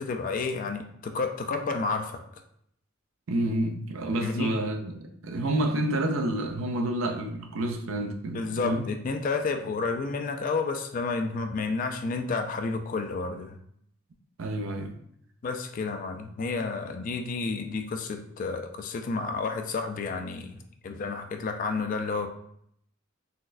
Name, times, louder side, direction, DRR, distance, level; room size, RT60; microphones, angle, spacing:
voice 1, 0.0-2.2 4.2-4.5 8.3-13.6 15.4-22.3, left 4 dB, 40° left, 0.3 m, -31 dB
voice 2, 3.3-8.9 14.4-15.0, right 1 dB, 75° right, 0.4 m, -29 dB
4.0 x 2.1 x 2.5 m
head